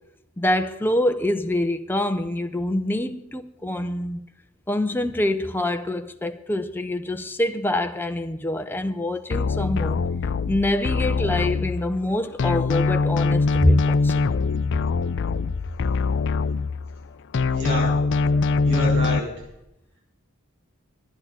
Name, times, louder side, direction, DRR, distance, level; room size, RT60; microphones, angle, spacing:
voice 1, 0.4-4.3 4.7-10.1 10.5-14.2 18.3-18.6, left 1 dB, 10° left, 0.5 m, -25 dB
sound 1, 9.3-12.1 12.4-17.1 17.3-19.2, left 4 dB, 60° left, 0.4 m, -23 dB
voice 2, 17.4-17.9 18.6-19.3, equal, 60° right, 5.7 m, -28 dB
11.0 x 10.0 x 8.3 m
head